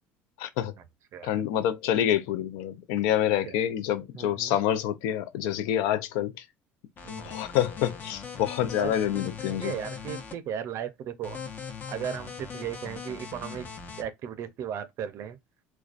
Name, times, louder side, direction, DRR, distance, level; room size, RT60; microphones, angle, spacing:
voice 1, 0.4-0.7 1.2-6.3 7.2-9.7, left 11 dB, 80° left, 0.4 m, -27 dB
voice 2, 4.1-4.6 7.0-7.4 8.8-8.9 9.5-11.4 11.9-13.7 14.0-15.4, right 9 dB, 55° right, 0.5 m, -36 dB
sound 1, 7.0-10.3 11.2-14.0, left 6 dB, 35° left, 0.7 m, -40 dB
2.4 x 2.2 x 2.4 m
supercardioid pair, 95°, 6 cm